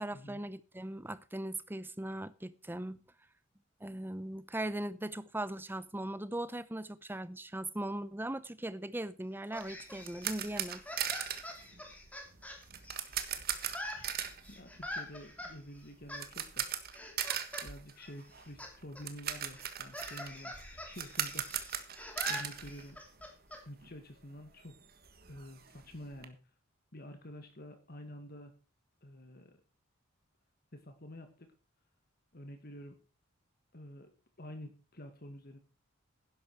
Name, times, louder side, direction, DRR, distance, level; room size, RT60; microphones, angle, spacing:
voice 1, 0.0-3.0 3.8-10.8, right 1 dB, 10° right, 0.7 m, -39 dB
sound 1, 9.5-13.3 13.6-15.5 16.1-16.2 16.9-17.7 17.9-18.7 19.0-19.1 19.5-23.6, left 1 dB, 5° left, 2.9 m, -45 dB
sound 2, 9.6-23.6 23.8-24.0 24.4-24.5 24.7-26.3, right 9 dB, 45° right, 1.6 m, -39 dB
voice 2, 14.5-16.7 17.6-22.0 22.3-23.0 23.7-24.8 25.3-26.4 26.9-28.5 29.0-29.6 30.7-31.5 32.3-33.0 33.7-34.1 34.4-35.6, equal, 50° left, 1.9 m, -49 dB
11.5 x 11.0 x 4.7 m
head